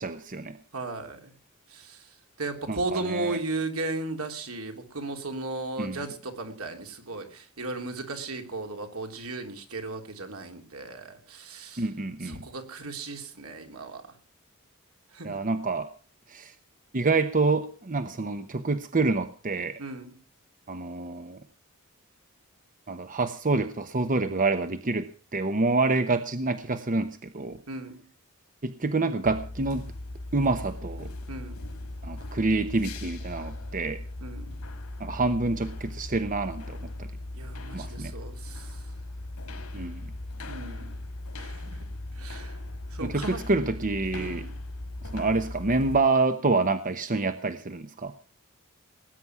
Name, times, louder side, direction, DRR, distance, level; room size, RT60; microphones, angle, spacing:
voice 1, 0.0-0.6 2.7-3.4 5.8-6.0 11.8-12.4 15.2-15.9 16.3-16.5 16.9-19.8 20.7-21.4 22.9-27.6 28.6-29.8 30.3-31.1 32.0-34.0 35.0-36.9 37.7-38.1 39.7-40.1 43.0-44.4 45.1-48.1, right 3 dB, 40° right, 10 dB, 0.9 m, -27 dB
voice 2, 0.7-1.3 1.7-2.1 2.4-11.9 12.2-14.0 15.1-15.3 19.8-20.1 27.7-28.0 31.3-31.6 34.2-34.6 37.3-38.8 40.5-41.0 41.4-41.8 42.1-42.6 42.9-43.4 44.1-44.6, right 2 dB, 75° right, 5 dB, 3.3 m, -36 dB
sound 1, 29.2-46.0, left 2 dB, 90° left, 3.3 m, -38 dB
19.5 x 9.7 x 6.0 m, 0.39 s
head